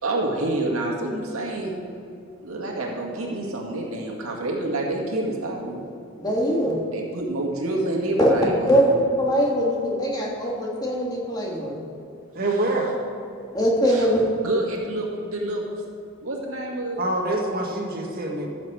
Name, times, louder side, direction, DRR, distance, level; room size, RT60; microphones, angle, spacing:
voice 1, 0.0-1.7 2.4-5.8 6.9-8.9 12.5-12.6 13.9-14.1 14.4-15.6 16.2-17.0, right 2 dB, 85° right, -1 dB, 1.9 m, -28 dB
voice 2, 6.2-6.8 8.2-8.3 8.7-8.8 9.2-11.8 13.5-14.2, equal, 20° left, -2 dB, 1.6 m, -22 dB
voice 3, 12.3-12.9 17.0-18.5, right 2 dB, 45° right, 0 dB, 1.6 m, -25 dB
14.0 x 7.2 x 4.9 m, 2.6 s
head